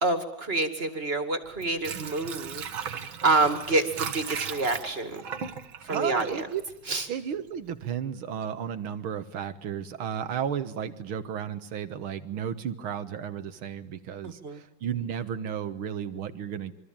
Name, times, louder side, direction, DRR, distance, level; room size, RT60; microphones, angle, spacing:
voice 1, 0.0-5.2 5.9-6.4 6.9-7.1 14.2-14.6, right 2 dB, 30° right, 8 dB, 2.3 m, -27 dB
Water / Sink (filling or washing), 1.4-7.3 7.7-7.8, right 7 dB, 75° right, 2.2 m, -37 dB
voice 2, 5.9-6.6 7.1-16.7, right 8 dB, 90° right, 11 dB, 2.2 m, -33 dB
26.5 x 24.0 x 8.9 m, 0.77 s
omnidirectional pair, 2.2 m